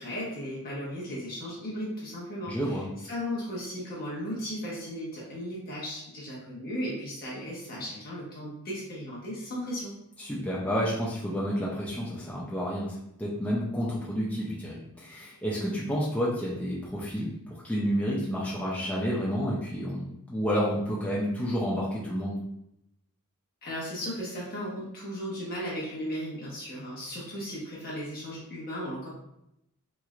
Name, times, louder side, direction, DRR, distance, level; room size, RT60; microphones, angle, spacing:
voice 1, 0.0-9.9 23.6-29.1, equal, 40° left, -6 dB, 0.7 m, -36 dB
voice 2, 2.5-2.8 10.2-22.4, equal, 5° left, -6 dB, 0.5 m, -30 dB
3.0 x 3.0 x 2.4 m, 0.81 s
head